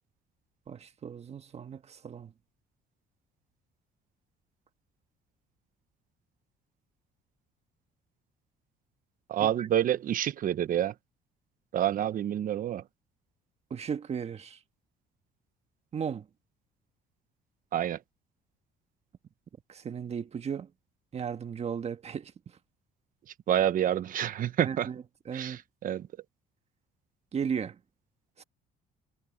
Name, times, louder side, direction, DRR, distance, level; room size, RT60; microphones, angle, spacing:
voice 1, 0.7-2.3 9.4-9.7 13.7-14.6 15.9-16.2 19.7-20.7 21.1-22.3 24.6-25.6 27.3-27.7 28.4-28.5, right 7 dB, 40° right, 1.5 m, -35 dB
voice 2, 9.3-10.9 11.7-12.8 17.7-18.0 23.5-24.9 25.3-26.1, right 11 dB, 55° right, 1.1 m, -28 dB
cardioid pair, 110°, 17 cm